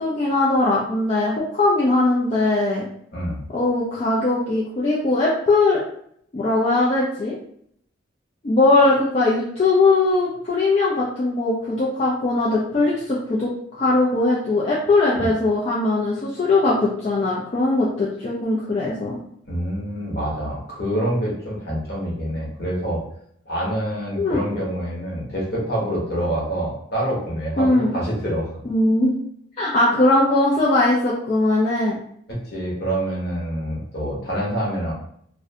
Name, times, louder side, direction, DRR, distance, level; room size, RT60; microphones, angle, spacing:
voice 1, 0.0-2.9 3.5-5.8 6.3-7.4 8.4-19.2 24.2-24.4 27.6-27.9 28.7-29.1 29.6-32.0, left 2 dB, 35° left, -6 dB, 0.4 m, -20 dB
voice 2, 3.1-3.4 15.2-15.3 19.4-23.0 23.5-28.5 32.3-34.9, right 1 dB, 50° left, -4 dB, 0.9 m, -26 dB
2.5 x 2.0 x 2.6 m, 0.67 s
head